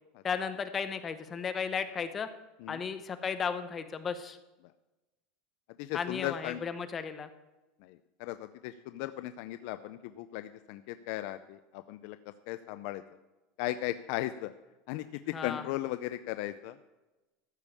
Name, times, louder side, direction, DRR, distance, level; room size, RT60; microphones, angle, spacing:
voice 1, 0.2-2.3 2.7-4.4 5.9-7.3 15.3-15.7, left 6 dB, 20° left, 10 dB, 0.8 m, -34 dB
voice 2, 5.8-6.6 7.8-12.2 12.5-13.0 13.6-14.5 14.9-16.8, left 15 dB, 60° left, 10 dB, 0.5 m, -37 dB
14.0 x 5.3 x 8.3 m, 1.1 s
supercardioid pair, 160°, 0 cm